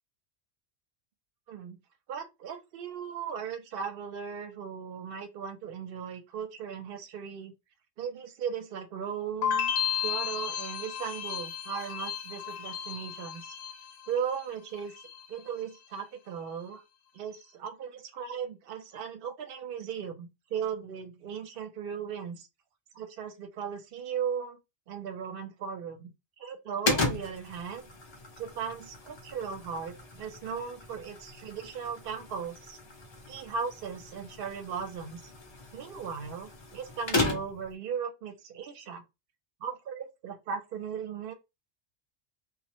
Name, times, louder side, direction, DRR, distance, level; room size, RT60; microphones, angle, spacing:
voice 1, 1.5-1.8 2.1-7.5 8.0-9.7 10.0-13.5 14.1-15.0 15.3-16.8 17.1-22.5 22.9-24.6 24.9-26.1 26.4-27.9 28.4-32.8 33.3-35.3 35.7-39.0 39.6-41.3, right 7 dB, 60° right, 0.7 m, -37 dB
sound 1, 9.4-14.4 14.7-15.4, left 9 dB, 70° left, 0.8 m, -33 dB
sound 2, 26.8-37.7, left 2 dB, 50° left, 0.3 m, -36 dB
2.1 x 2.0 x 2.8 m
omnidirectional pair, 1.2 m